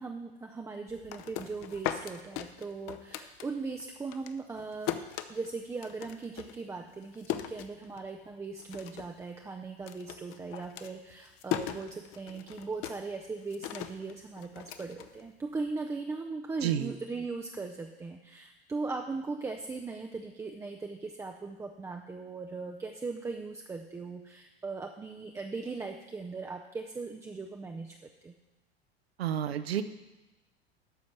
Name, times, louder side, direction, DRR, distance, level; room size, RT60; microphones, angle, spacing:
voice 1, 0.0-5.0 5.3-28.0 28.2-28.3, right 4 dB, 10° right, 3 dB, 0.5 m, -39 dB
sound 1, 0.9-3.8 4.1-8.3 8.6-9.2 9.4-15.7, left 11 dB, 40° left, 0.7 m, -39 dB
voice 2, 16.6-16.9 29.2-29.8, right 10 dB, 70° right, 12 dB, 0.8 m, -30 dB
13.0 x 5.2 x 5.8 m, 1.0 s
figure-of-eight pair, 80°, 32 cm